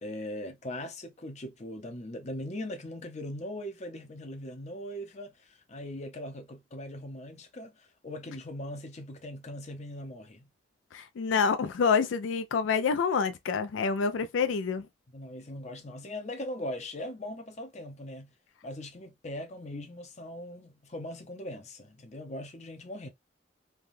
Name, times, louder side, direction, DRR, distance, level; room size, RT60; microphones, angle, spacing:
voice 1, 0.0-10.5 15.1-18.3 18.6-23.1, left 1 dB, 35° left, 0.6 m, -40 dB
voice 2, 10.9-14.9, left 5 dB, 80° left, 0.4 m, -27 dB
3.3 x 2.2 x 2.6 m
head